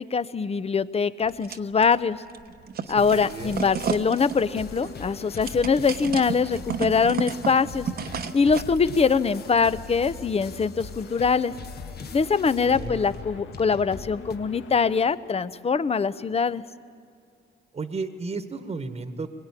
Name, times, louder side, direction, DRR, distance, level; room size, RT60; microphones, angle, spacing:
voice 1, 0.0-2.2 2.9-7.9 8.3-11.5 12.1-16.6, left 5 dB, 30° left, 15 dB, 0.9 m, -23 dB
sound 1, 1.2-2.0 2.3-8.8, right 7 dB, 50° right, 1.2 m, -33 dB
voice 2, 2.8-3.6 12.6-13.0 17.7-19.3, right 4 dB, 30° right, 9 dB, 1.5 m, -34 dB
sound 2, 3.0-14.4, left 5 dB, 55° left, 1.5 m, -42 dB
sound 3, 4.3-15.1, left 5 dB, 80° left, 1.8 m, -44 dB
23.0 x 22.0 x 9.9 m, 2.4 s
cardioid pair, 90°, 20 cm